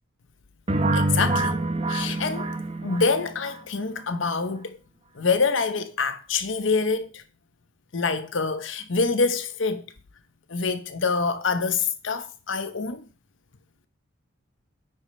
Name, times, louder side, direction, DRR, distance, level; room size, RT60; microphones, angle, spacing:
sound 1, 0.7-3.5, right 2 dB, 30° right, 0.9 m, -26 dB
voice 1, 0.9-1.6 1.9-2.5 2.8-4.8 5.1-7.2 7.9-9.8 10.5-13.0, left 4 dB, 70° left, 0.8 m, -26 dB
9.4 x 5.1 x 4.3 m
head